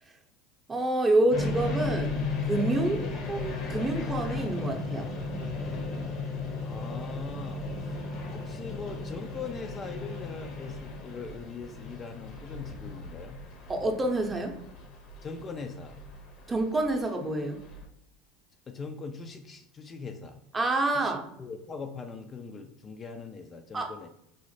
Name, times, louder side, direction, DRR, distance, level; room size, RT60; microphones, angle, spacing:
voice 1, 0.7-2.2 2.5-3.0 3.3-5.1 13.7-14.5 16.5-17.6 20.5-21.2 23.7-23.9, right 2 dB, 20° right, 3 dB, 0.6 m, -27 dB
sound 1, 1.3-17.9, left 3 dB, 50° left, 0.8 m, -35 dB
voice 2, 6.6-7.6 8.3-13.4 15.2-16.0 18.7-20.4 20.9-24.1, left 5 dB, 30° left, 5 dB, 0.3 m, -41 dB
4.0 x 2.0 x 3.1 m, 0.76 s
hypercardioid pair, 80°, 0 cm